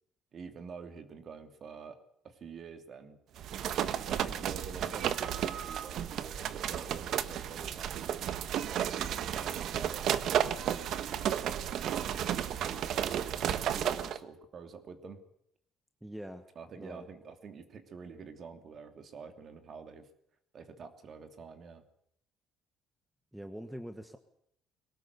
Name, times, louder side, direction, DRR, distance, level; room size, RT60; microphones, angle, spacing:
voice 1, 0.3-2.0 2.2-3.2 4.0-8.3 9.0-11.7 12.3-15.2 16.5-20.1 20.5-21.8, right 5 dB, 35° right, 7 dB, 2.8 m, -47 dB
sound 1, 3.4-14.2, right 10 dB, 55° right, 1.4 m, -33 dB
voice 2, 16.0-16.5 16.7-17.1 23.3-24.2, equal, 5° right, 8 dB, 1.3 m, -43 dB
22.0 x 18.5 x 8.2 m, 0.70 s
cardioid pair, 150°, 0 cm